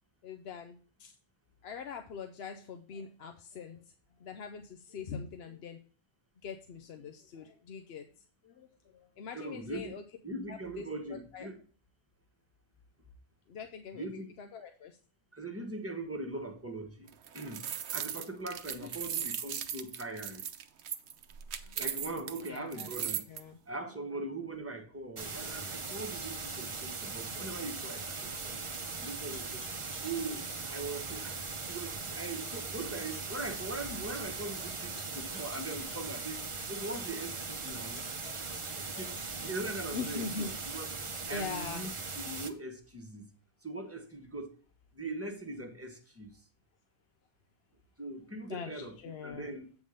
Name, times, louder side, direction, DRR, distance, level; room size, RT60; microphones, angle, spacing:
voice 1, 0.2-1.2 1.6-5.8 6.4-8.1 8.4-10.2 10.5-11.5 13.5-14.9 18.8-19.0 21.7-22.9 23.2-23.6 23.8-24.1 31.9-32.3 34.6-34.7 35.1-35.7 37.6-40.5 41.0-41.9 48.5-49.6, left 5 dB, 75° left, 0.9 m, -44 dB
voice 2, 9.3-9.9 10.2-11.6 13.9-14.3 15.3-17.7 17.9-20.4 21.8-23.2 23.7-28.5 29.0-29.7 30.0-31.4 31.7-38.0 38.7-40.3 40.7-40.9 41.3-41.9 42.2-43.3 43.6-44.6 44.9-46.3 48.0-48.9 49.2-49.7, right 2 dB, 15° right, 1.2 m, -41 dB
sound 1, 17.1-23.4, right 9 dB, 90° right, 1.0 m, -38 dB
sound 2, 25.2-42.5, right 4 dB, 35° right, 0.7 m, -39 dB
sound 3, 25.7-27.7 28.0-30.6 31.1-31.2 31.6-31.7 32.0-36.8 38.0-39.9, left 3 dB, 50° left, 1.2 m, -59 dB
8.3 x 3.6 x 6.4 m
omnidirectional pair, 1.1 m